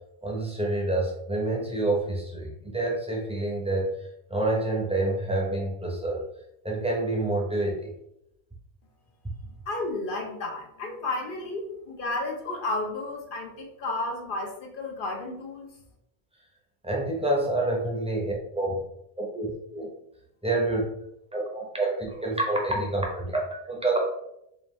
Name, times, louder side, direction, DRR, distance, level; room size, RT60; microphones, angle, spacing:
voice 1, 0.2-3.9 4.3-6.2 6.6-7.9 16.8-18.8 19.2-19.9 20.4-20.8 21.3-24.0, right 2 dB, 5° right, -1 dB, 0.7 m, -27 dB
voice 2, 9.4-15.7, left 2 dB, 60° left, 1 dB, 1.0 m, -32 dB
5.2 x 2.5 x 3.1 m, 0.80 s
omnidirectional pair, 1.0 m